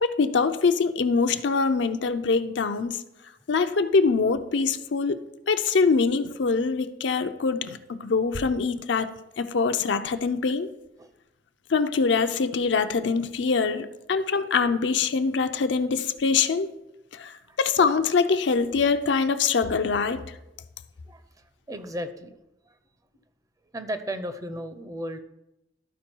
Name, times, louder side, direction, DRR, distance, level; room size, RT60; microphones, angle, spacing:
voice 1, 0.0-3.0 3.5-5.2 5.5-9.1 9.4-10.7 11.7-16.7 17.2-17.3 17.6-20.2, left 4 dB, 70° left, 9 dB, 0.5 m, -24 dB
voice 2, 21.7-22.3 22.7-22.8 23.7-25.2, equal, 20° right, 10 dB, 0.6 m, -34 dB
13.0 x 4.6 x 4.5 m, 0.91 s
head